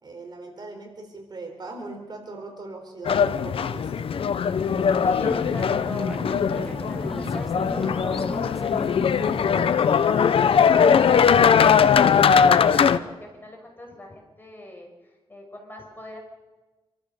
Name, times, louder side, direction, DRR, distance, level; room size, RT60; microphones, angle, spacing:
voice 1, 0.0-4.1, right 3 dB, 45° right, 3 dB, 4.2 m, -39 dB
sound 1, 3.0-13.0, left 7 dB, 70° left, 0.8 m, -20 dB
sound 2, 4.6-9.7, equal, ahead, 0.9 m, -35 dB
voice 2, 5.0-8.6 9.7-16.2, left 1 dB, 20° left, 1 dB, 5.9 m, -39 dB
27.0 x 14.0 x 6.8 m, 1.2 s
wide cardioid pair, 120°, 10 cm